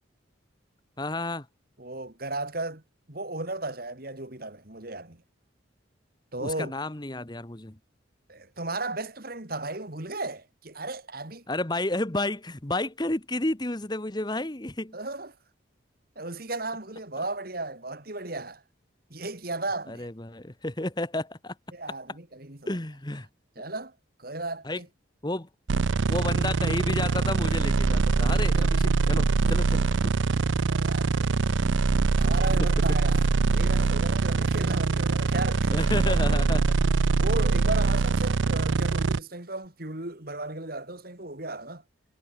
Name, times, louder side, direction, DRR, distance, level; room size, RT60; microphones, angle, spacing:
voice 1, 1.0-1.5 6.4-7.8 11.5-14.9 19.9-21.5 22.7-23.3 24.6-24.8 25.2-25.5 26.1-29.9 35.7-36.6, left 2 dB, 20° left, 1.2 m, -31 dB
voice 2, 1.8-2.8 3.1-5.2 6.3-6.8 8.3-11.4 14.9-15.3 16.2-18.6 19.1-20.1 21.7-22.7 23.6-24.9 30.6-31.4 32.2-35.7 36.0-36.6 37.2-41.8, right 2 dB, 50° right, 2.7 m, -35 dB
sound 1, 25.7-39.2, right 4 dB, 75° right, 0.6 m, -23 dB
head